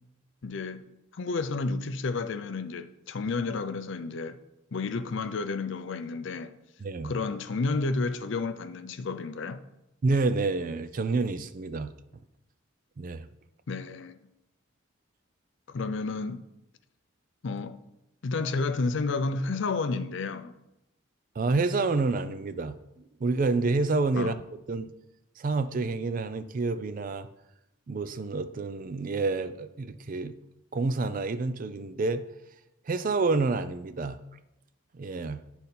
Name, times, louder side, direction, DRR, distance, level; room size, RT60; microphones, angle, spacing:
voice 1, 0.4-0.8 1.1-4.4 4.7-6.5 7.0-9.6 13.7-14.2 15.7-16.4 17.4-17.8 18.2-20.5 24.2-24.3, left 3 dB, 60° left, 0.4 m, -31 dB
voice 2, 6.8-7.1 10.0-11.9 13.0-13.3 21.4-22.8 23.2-24.4 24.7-24.9 25.4-27.3 27.9-30.3 30.7-32.2 32.9-34.2 34.9-35.4, right 3 dB, 40° right, 0.3 m, -28 dB
9.9 x 4.0 x 4.2 m
head